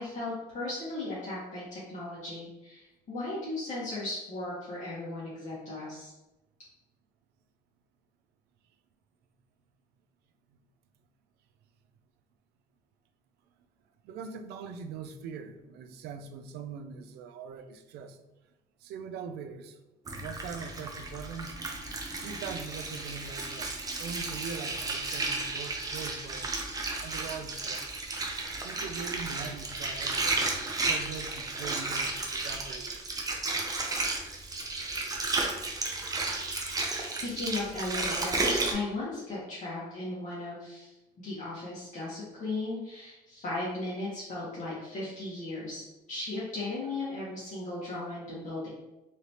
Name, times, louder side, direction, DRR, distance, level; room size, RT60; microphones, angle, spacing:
voice 1, 0.0-6.1 36.9-45.8 46.1-48.7, left 2 dB, 45° left, -8 dB, 1.2 m, -36 dB
voice 2, 14.0-18.2 18.8-19.8 20.2-21.5 22.2-23.7 24.0-26.6 27.0-27.9 28.6-33.0, right 6 dB, 75° right, 7 dB, 0.4 m, -42 dB
Water, 20.1-38.7, right 3 dB, 20° right, 0.5 m, -33 dB
3.2 x 2.9 x 2.8 m, 0.99 s
cardioid pair, 110°, 17 cm